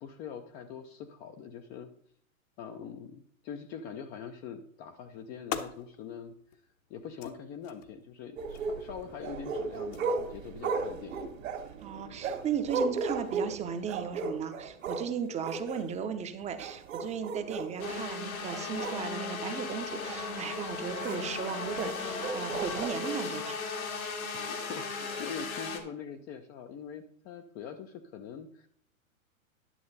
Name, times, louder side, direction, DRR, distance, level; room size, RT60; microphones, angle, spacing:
voice 1, 0.0-1.9 2.6-6.3 6.9-11.3 24.3-28.7, left 7 dB, 25° left, 6 dB, 0.5 m, -43 dB
sound 1, 4.8-15.2, left 8 dB, 65° left, 1.2 m, -48 dB
sound 2, 8.4-15.1 15.4-15.8 16.4-18.0 18.4-19.4 20.0-20.2 21.0-21.2 21.8-22.9, right 4 dB, 65° right, 2.0 m, -35 dB
voice 2, 11.8-23.6, right 7 dB, 15° right, 9 dB, 0.7 m, -36 dB
sound 3, 17.8-25.8, left 4 dB, 85° left, 2.2 m, -36 dB
11.0 x 6.5 x 4.0 m, 0.64 s
hypercardioid pair, 120°, 42 cm